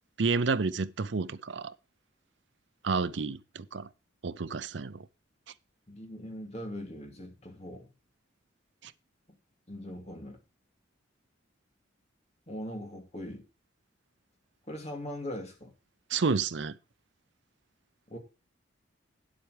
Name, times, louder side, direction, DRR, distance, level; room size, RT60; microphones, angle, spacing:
voice 1, 0.2-1.7 2.8-3.9 4.2-5.1 8.8-8.9 16.1-16.8, right 4 dB, 60° right, 0.6 m, -30 dB
voice 2, 5.9-7.9 9.7-10.4 12.5-13.4 14.7-15.7 18.1-18.2, equal, 35° left, 2.5 m, -40 dB
9.3 x 7.8 x 4.9 m
head